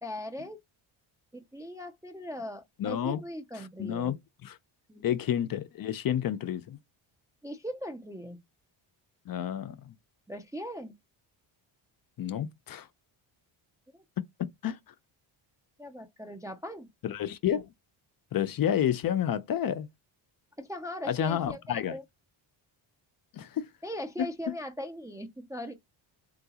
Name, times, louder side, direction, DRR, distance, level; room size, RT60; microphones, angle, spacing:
voice 1, 0.0-0.6 1.3-4.2 4.9-5.2 7.4-8.4 10.3-10.9 13.9-14.0 15.8-16.9 20.6-22.0 23.8-25.7, equal, 5° right, 0.4 m, -39 dB
voice 2, 2.8-3.2 3.5-4.6 5.0-6.8 9.3-9.9 12.2-12.9 14.4-14.8 17.0-17.7 18.3-19.9 21.0-22.0 23.3-23.7, left 10 dB, 45° left, 0.5 m, -30 dB
3.8 x 2.3 x 2.8 m
cardioid pair, 110°, 49 cm